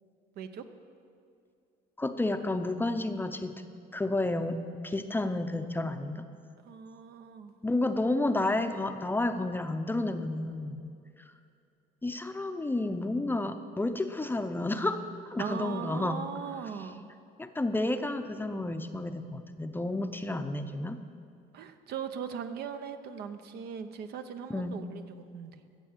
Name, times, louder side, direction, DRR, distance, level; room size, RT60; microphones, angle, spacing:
voice 1, 2.0-3.6 3.9-6.2 7.6-10.9 12.0-16.3 17.4-21.0 24.5-24.8, left 2 dB, 10° left, 8 dB, 0.6 m, -31 dB
voice 2, 6.7-7.5 15.4-17.1 21.5-25.6, right 7 dB, 70° right, 8 dB, 0.9 m, -39 dB
14.5 x 7.5 x 7.3 m, 2.4 s
cardioid pair, 110°, 17 cm